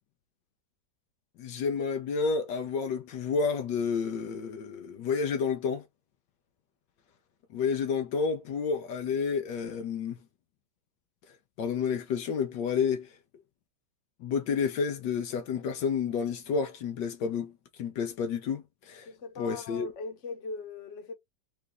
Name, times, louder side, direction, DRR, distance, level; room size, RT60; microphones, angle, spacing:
voice 1, 1.4-5.8 7.5-10.2 11.6-13.1 14.2-17.5 17.8-19.1 19.4-19.9, left 5 dB, 75° left, 1.4 m, -30 dB
voice 2, 19.0-21.1, left 3 dB, 45° left, 1.3 m, -40 dB
4.9 x 2.6 x 3.6 m
omnidirectional pair, 1.9 m